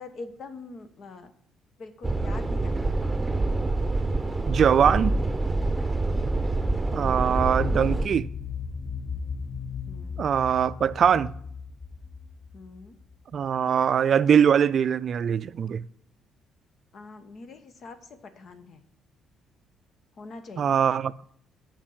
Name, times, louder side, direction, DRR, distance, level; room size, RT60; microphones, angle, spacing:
voice 1, 0.0-1.3 1.8-3.0 7.0-7.4 9.9-10.3 12.5-13.0 16.9-18.8 20.2-20.8, left 3 dB, 60° left, 1.2 m, -44 dB
sound 1, 2.0-8.1, right 2 dB, 20° right, 0.8 m, -26 dB
voice 2, 4.5-5.2 6.9-8.3 10.2-11.3 13.3-15.8 20.6-21.1, right 8 dB, 55° right, 0.3 m, -22 dB
sound 2, 7.4-13.1, left 5 dB, 35° left, 0.6 m, -35 dB
7.3 x 5.3 x 7.3 m
hypercardioid pair, 55°, 0 cm